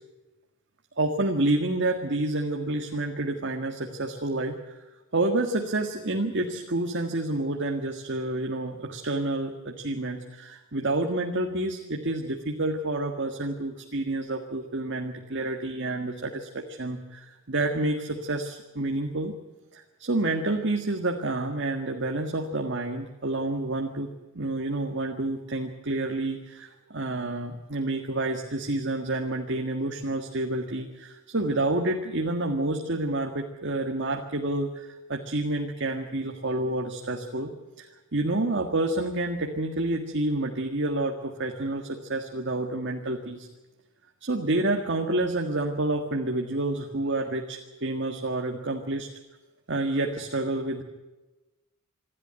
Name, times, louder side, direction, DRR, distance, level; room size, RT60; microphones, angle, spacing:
voice 1, 1.0-4.8 5.1-19.4 19.7-37.5 37.8-37.9 38.1-43.5 44.2-49.1 49.7-50.8, right 2 dB, 55° right, 3 dB, 1.8 m, -29 dB
27.0 x 12.0 x 9.0 m, 1.1 s
head